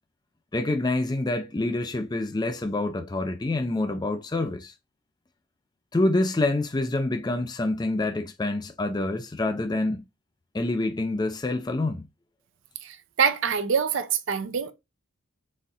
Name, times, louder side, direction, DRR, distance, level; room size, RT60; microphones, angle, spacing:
voice 1, 0.5-4.7 5.9-10.0 10.5-12.1, left 2 dB, 20° left, 0.4 m, -27 dB
voice 2, 12.8-14.7, right 6 dB, 60° right, 0.5 m, -25 dB
4.1 x 2.4 x 3.7 m
head